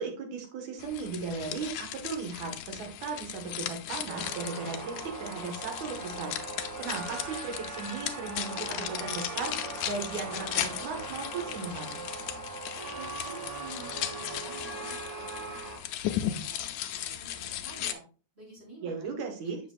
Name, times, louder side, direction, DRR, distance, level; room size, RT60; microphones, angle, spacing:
voice 1, 0.0-6.4 6.8-12.0 18.8-19.6, right 4 dB, 75° right, 3 dB, 2.7 m, -37 dB
sound 1, 0.8-17.9, left 11 dB, 85° left, 2.0 m, -37 dB
sound 2, 4.1-15.8, right 3 dB, 45° right, 2.0 m, -40 dB
voice 2, 12.9-18.0 18.3-19.3, right 2 dB, 20° right, -5 dB, 4.2 m, -50 dB
7.3 x 7.0 x 2.3 m, 0.37 s
omnidirectional pair, 3.4 m